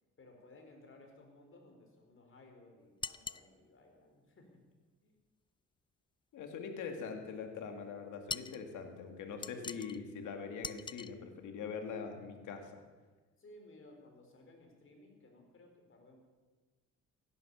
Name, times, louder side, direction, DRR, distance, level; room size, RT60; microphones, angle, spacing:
voice 1, 0.2-4.6 5.0-5.2 6.6-7.0 13.4-16.2, left 2 dB, 45° left, 3 dB, 4.6 m, -59 dB
sound 1, 3.0-3.5 8.3-8.6 9.4-10.0 10.6-11.1, left 4 dB, 15° left, 0.4 m, -42 dB
voice 2, 6.3-12.8, left 5 dB, 85° left, 5 dB, 2.3 m, -43 dB
16.5 x 11.0 x 7.1 m, 1.3 s
cardioid pair, 90°, 30 cm